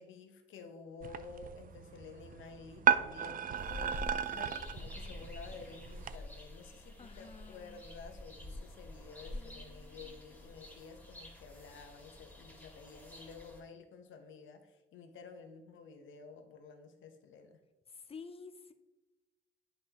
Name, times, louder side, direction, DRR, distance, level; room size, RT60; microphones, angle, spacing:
voice 1, 0.0-4.0 4.3-17.6, left 5 dB, 75° left, 6 dB, 1.0 m, -51 dB
sound 1, 1.0-6.2, right 8 dB, 45° right, 0.4 m, -35 dB
sound 2, 3.5-13.6, left 1 dB, 10° left, 2.1 m, -48 dB
voice 2, 7.0-7.8 9.3-10.4 17.9-18.7, left 5 dB, 30° left, 10 dB, 0.6 m, -52 dB
9.7 x 5.2 x 2.9 m, 1.1 s
cardioid pair, 90°, 20 cm